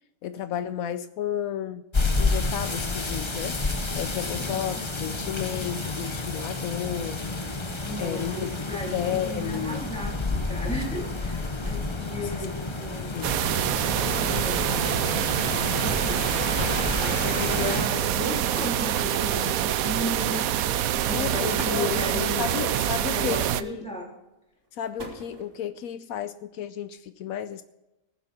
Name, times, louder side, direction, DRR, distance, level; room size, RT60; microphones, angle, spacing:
voice 1, 0.2-1.8 2.2-7.2 8.0-9.8 13.1-13.3 21.1-21.9 22.4-23.8 24.7-27.6, left 10 dB, 80° left, 1.1 m, -33 dB
sound 1, 1.9-17.9, left 3 dB, 25° left, 0.9 m, -30 dB
voice 2, 7.8-13.2 13.8-16.4 17.0-20.5 20.9-24.1, left 1 dB, 5° left, 3.3 m, -35 dB
sound 2, 13.2-23.6, right 11 dB, 80° right, 1.1 m, -26 dB
sound 3, 14.0-14.4 15.4-15.6 16.2-16.3 16.5-16.9 18.9-19.8 20.7-20.9 21.4-22.0 23.3-23.8 24.6-25.7, right 1 dB, 60° right, 2.7 m, -41 dB
20.0 x 7.5 x 4.2 m
omnidirectional pair, 1.5 m